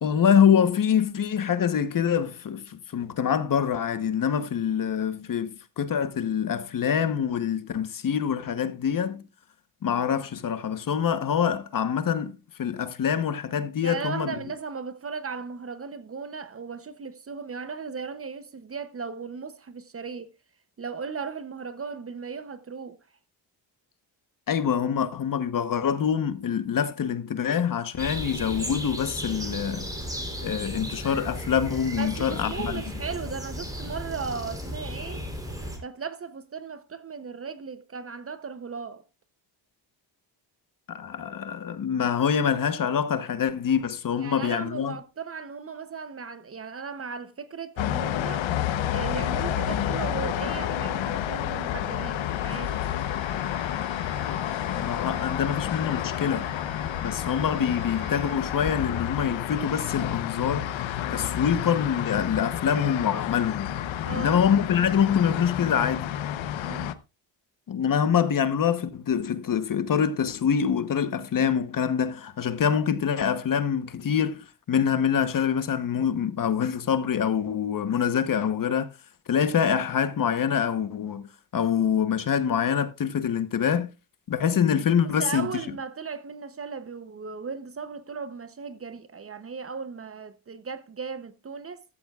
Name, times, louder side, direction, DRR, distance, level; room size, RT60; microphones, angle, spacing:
voice 1, 0.0-9.2 9.8-14.3 24.5-29.9 30.4-32.8 40.9-45.0 54.7-56.5 57.0-60.8 61.1-63.8 64.1-66.0 67.7-78.9 79.3-81.3 81.5-83.9 84.3-85.5, left 8 dB, 45° left, 1.0 m, -25 dB
voice 2, 13.8-20.3 20.8-23.0 32.0-35.2 35.8-39.0 44.2-48.5 48.9-52.7 64.0-64.4 66.6-66.9 72.5-72.6 85.0-91.8, right 5 dB, 30° right, 0.8 m, -36 dB
sound 1, 28.0-35.8, equal, 10° right, 3.5 m, -35 dB
sound 2, 47.8-66.9, left 11 dB, 80° left, 1.0 m, -30 dB
Bowed string instrument, 51.6-58.5, right 4 dB, 50° right, 7.5 m, -49 dB
14.5 x 13.0 x 2.4 m
wide cardioid pair, 155°, 45 cm